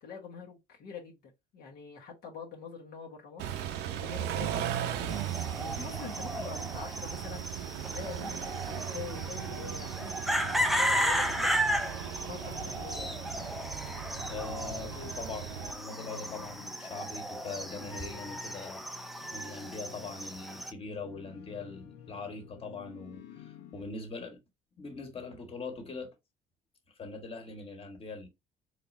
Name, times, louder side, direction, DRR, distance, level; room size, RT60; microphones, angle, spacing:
voice 1, 0.0-3.6 4.0-11.8 12.2-13.2, left 6 dB, 70° left, 1.2 m, -45 dB
Car / Idling / Accelerating revving vroom, 3.4-15.7, right 10 dB, 90° right, 0.6 m, -38 dB
sound 1, 5.1-20.7, equal, ahead, 0.5 m, -35 dB
sound 2, 9.1-23.8, left 8 dB, 85° left, 0.7 m, -51 dB
voice 2, 14.3-24.4 24.8-26.1 27.0-28.3, left 3 dB, 35° left, 1.4 m, -42 dB
4.2 x 3.3 x 2.6 m
cardioid pair, 110°, 17 cm